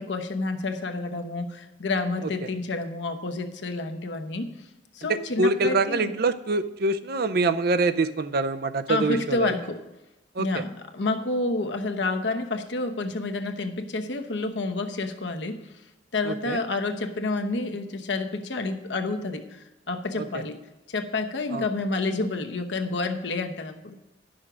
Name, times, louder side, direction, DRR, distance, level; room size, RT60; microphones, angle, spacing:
voice 1, 0.0-4.5 4.9-6.1 8.9-9.8 10.4-15.6 16.1-20.6 20.9-24.0, left 3 dB, 80° left, 5 dB, 1.0 m, -29 dB
voice 2, 5.1-9.5 10.4-10.6 16.3-16.6 20.2-20.4 21.5-21.7, right 3 dB, 60° right, 11 dB, 0.5 m, -25 dB
10.5 x 6.3 x 6.0 m, 0.99 s
head